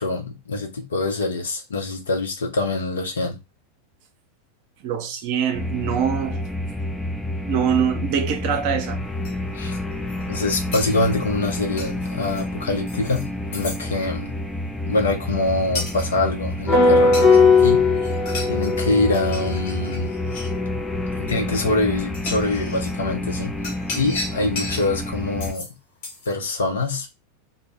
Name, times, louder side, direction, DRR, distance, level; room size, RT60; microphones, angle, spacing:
voice 1, 0.0-3.4 9.5-9.8 10.2-14.3 14.9-17.9 18.5-20.1 21.2-23.5 23.9-25.7 26.3-27.2, left 2 dB, 70° left, 0.6 m, -24 dB
voice 2, 4.8-6.4 7.4-9.0, right 8 dB, 50° right, 0.5 m, -24 dB
sound 1, 5.5-25.5, left 1 dB, 5° left, 0.4 m, -29 dB
sound 2, 9.2-9.3 9.9-10.2 10.7-12.4 12.9-13.3 13.5-13.8 15.7-16.1 17.1-17.7 18.0-18.9 19.1-20.6 21.5-21.6 22.1-22.9 23.6-24.9 25.4-25.7 26.0-26.3, left 3 dB, 55° left, 1.0 m, -34 dB
sound 3, 16.7-21.4, left 4 dB, 30° left, 0.9 m, -19 dB
2.0 x 2.0 x 3.3 m
figure-of-eight pair, 90°, 0 cm